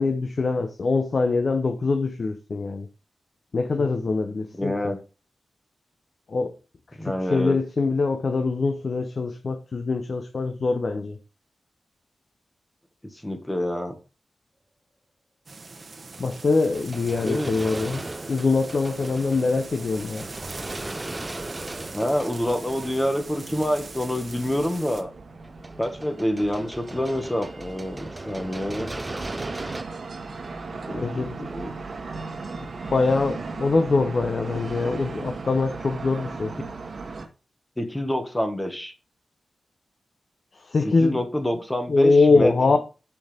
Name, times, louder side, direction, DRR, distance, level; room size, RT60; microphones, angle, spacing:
voice 1, 0.0-2.9 3.5-4.9 6.3-6.5 7.0-11.2 16.2-18.0 18.3-20.3 30.9-31.5 32.6-36.5 40.5-41.2 41.9-42.8, left 3 dB, 55° left, 0.9 m, -23 dB
voice 2, 4.5-5.0 7.0-7.6 13.2-14.0 17.2-17.5 21.9-25.1 25.8-28.9 30.8-31.7 37.8-38.9 40.8-42.8, equal, 10° left, 1.7 m, -27 dB
sound 1, 15.5-25.0, right 3 dB, 45° right, 1.5 m, -41 dB
sound 2, 16.1-24.0 25.4-29.8, right 2 dB, 20° right, 0.5 m, -38 dB
sound 3, 18.8-37.3, right 4 dB, 60° right, 1.6 m, -38 dB
6.6 x 5.8 x 5.2 m
wide cardioid pair, 85°, 0 cm